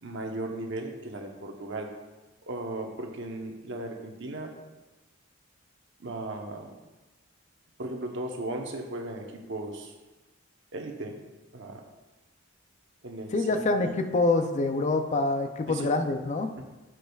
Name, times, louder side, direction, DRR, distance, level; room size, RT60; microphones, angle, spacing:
voice 1, 0.0-1.9 2.5-4.5 6.0-6.7 7.8-9.9 10.7-11.2 11.5-11.8 13.0-13.9 15.7-15.9 16.6-16.7, right 2 dB, 60° right, 2 dB, 0.9 m, -36 dB
voice 2, 13.3-16.5, left 2 dB, 35° left, 7 dB, 0.4 m, -26 dB
10.0 x 6.2 x 2.4 m, 1.2 s
head